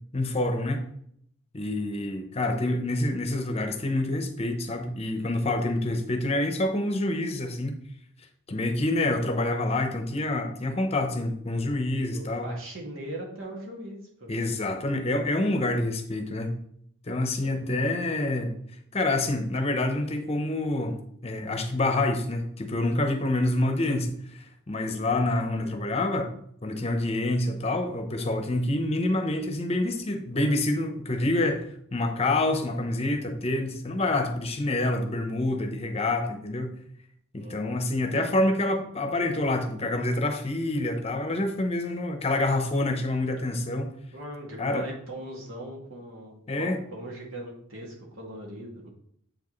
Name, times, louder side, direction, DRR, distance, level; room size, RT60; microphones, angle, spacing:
voice 1, 0.1-0.8 1.5-7.7 8.5-12.5 14.3-16.6 17.1-18.5 18.9-21.0 21.2-26.3 26.6-31.6 31.9-36.7 37.3-43.9 44.6-44.9 46.5-46.8, left 2 dB, 30° left, 6 dB, 0.8 m, -27 dB
voice 2, 12.1-14.3 17.4-17.6 37.4-37.8 44.1-48.9, right 1 dB, 70° right, -2 dB, 2.1 m, -40 dB
7.8 x 4.7 x 3.2 m, 0.69 s
head